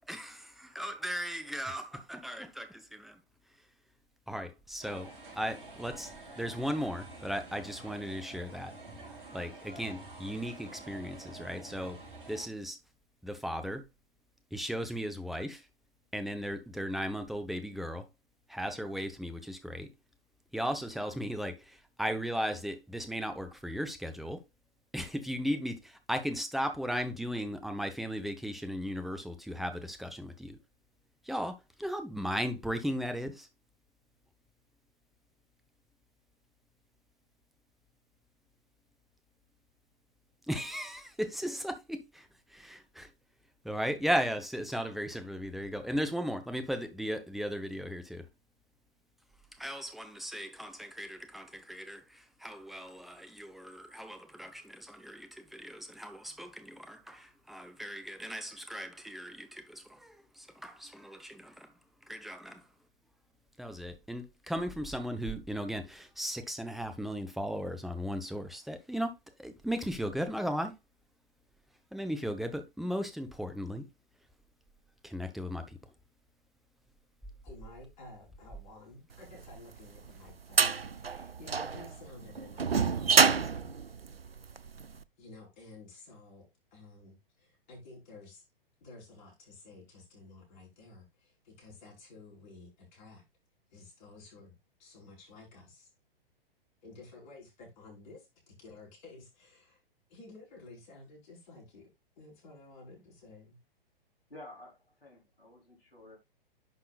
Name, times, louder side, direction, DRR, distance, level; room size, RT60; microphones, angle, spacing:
voice 1, 0.1-3.2 4.3-6.1 6.4-8.7 9.3-12.0 12.3-12.8 13.2-13.8 14.5-15.6 16.1-18.0 18.5-19.9 20.5-24.4 24.9-30.6 31.2-33.5 40.5-43.1 43.6-48.3 49.6-61.7 62.1-62.6 63.6-69.1 69.4-70.7 71.9-73.9 75.0-75.8, equal, ahead, 0.9 m, -36 dB
sound 1, 4.8-12.5, right 2 dB, 60° right, 4.6 m, -48 dB
voice 2, 77.4-83.7 85.2-88.4 88.8-93.2 93.7-94.5 94.8-95.9 96.8-99.8 100.1-101.9 102.2-103.6, left 3 dB, 50° left, 5.1 m, -53 dB
sound 2, 79.5-84.8, right 5 dB, 85° right, 0.6 m, -27 dB
voice 3, 104.3-106.2, left 1 dB, 80° left, 4.0 m, -51 dB
11.0 x 5.9 x 2.4 m
figure-of-eight pair, 115°, 29 cm